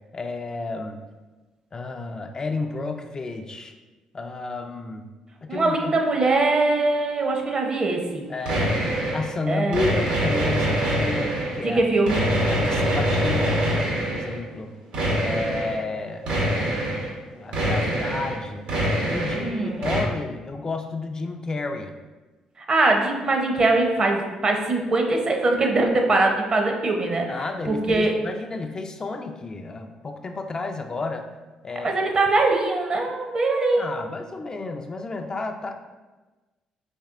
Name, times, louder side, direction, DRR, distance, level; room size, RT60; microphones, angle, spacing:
voice 1, 0.1-1.0 1.7-3.7 4.1-5.1 5.4-6.0 8.3-8.7 9.1-11.8 12.5-13.6 14.0-14.7 15.2-17.0 17.3-18.7 19.1-21.9 27.3-31.3 31.6-32.0 33.7-35.7, left 3 dB, 30° left, 5 dB, 0.3 m, -31 dB
voice 2, 5.5-8.2 9.5-9.8 11.6-12.2 19.3-19.8 22.7-27.3 27.7-28.1 31.8-34.0, right 2 dB, 40° right, 2 dB, 0.7 m, -22 dB
sound 1, 8.5-9.3 9.7-11.6 12.1-14.4 14.9-15.8 16.3-17.1 17.5-18.4 18.7-19.5 19.8-20.0, equal, 75° right, 1.0 m, -24 dB
4.2 x 3.2 x 2.5 m, 1.2 s
supercardioid pair, 70°, 2 cm